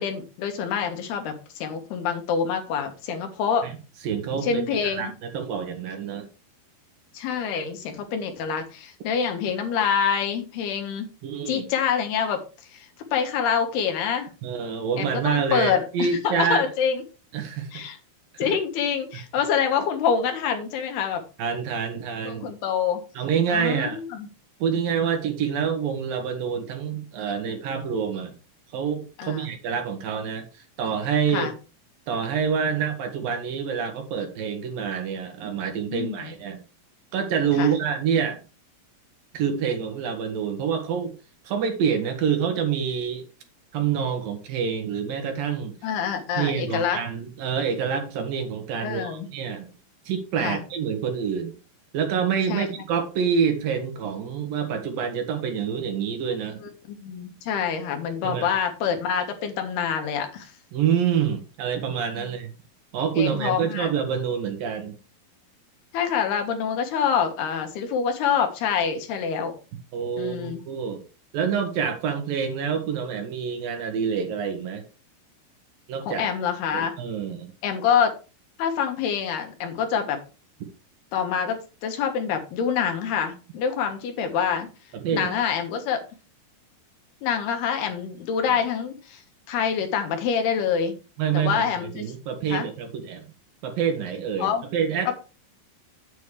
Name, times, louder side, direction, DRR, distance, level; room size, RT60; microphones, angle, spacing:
voice 1, 0.0-3.7 4.3-5.1 7.1-11.1 11.5-12.4 12.7-14.3 15.0-17.0 17.7-18.0 18.4-21.2 22.2-23.0 23.5-24.3 29.2-29.5 31.3-31.5 35.9-36.3 37.6-37.8 45.8-47.0 48.8-49.3 50.4-50.6 52.5-52.7 56.9-60.5 62.1-62.3 63.2-63.9 65.9-69.5 70.2-70.6 76.1-76.9 77.6-78.1 78.6-80.2 81.1-84.7 85.1-86.0 87.2-89.2 89.5-90.9 91.3-92.1 92.5-92.7 94.4-94.6 95.1-95.2, left 7 dB, 85° left, 5 dB, 3.5 m, -26 dB
voice 2, 4.0-6.3 11.2-11.7 14.4-16.7 17.3-17.8 18.3-18.6 21.4-22.5 23.2-24.0 24.6-28.3 28.7-31.5 32.1-36.6 37.1-38.4 39.3-41.1 41.4-43.2 43.7-45.8 46.4-49.7 50.1-51.5 51.9-56.6 58.2-58.5 60.7-62.5 62.9-65.0 69.9-71.0 71.3-74.8 75.9-76.2 76.7-77.5 84.9-85.3 91.2-93.3 93.6-95.1, right 7 dB, 70° right, 5 dB, 3.1 m, -27 dB
9.2 x 8.3 x 3.2 m, 0.33 s
omnidirectional pair, 4.5 m